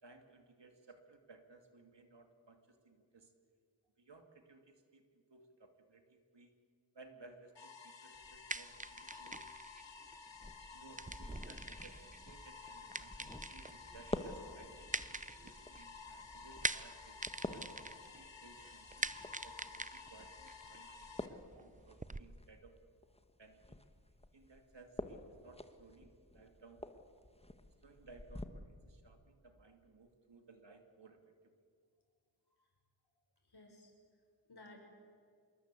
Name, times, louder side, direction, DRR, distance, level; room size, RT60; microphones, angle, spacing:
voice 1, 0.0-3.3 4.0-6.5 6.9-9.4 10.7-17.7 18.1-19.1 19.4-22.7 23.4-23.8 24.3-26.8 27.8-31.6, right 3 dB, 70° right, 6 dB, 2.7 m, -60 dB
sound 1, 7.5-21.3, left 5 dB, 75° left, 2.1 m, -54 dB
sound 2, 8.2-22.2, right 3 dB, 15° right, 0.7 m, -45 dB
sound 3, 10.3-28.4, left 1 dB, 15° left, 1.5 m, -50 dB
voice 2, 33.4-34.8, left 2 dB, 55° left, 2 dB, 6.6 m, -59 dB
26.5 x 22.5 x 8.4 m, 2.2 s
wide cardioid pair, 75°, 45 cm